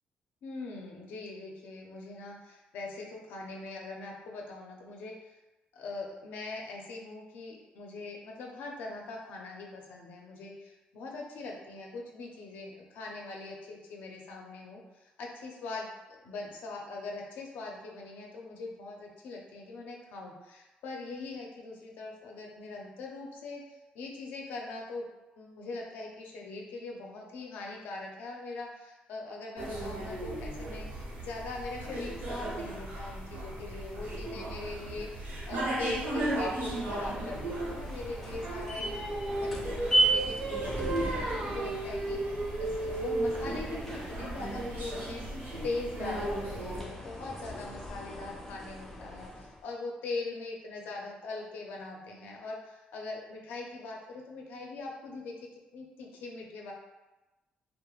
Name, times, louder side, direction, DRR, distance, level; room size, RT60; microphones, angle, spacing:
voice 1, 0.4-5.3 5.7-14.8 15.2-25.1 25.4-35.1 35.5-39.0 39.4-45.2 45.6-55.3 55.7-56.7, left 3 dB, 90° left, 0 dB, 0.5 m, -41 dB
sound 1, 29.6-46.8, right 1 dB, 85° right, 0.8 m, -37 dB
sound 2, 36.1-49.6, right 2 dB, 10° left, 0.4 m, -36 dB
Singing, 38.4-43.6, right 2 dB, 45° right, 0.5 m, -34 dB
2.3 x 2.1 x 3.1 m, 1.1 s
cardioid pair, 165°, 3 cm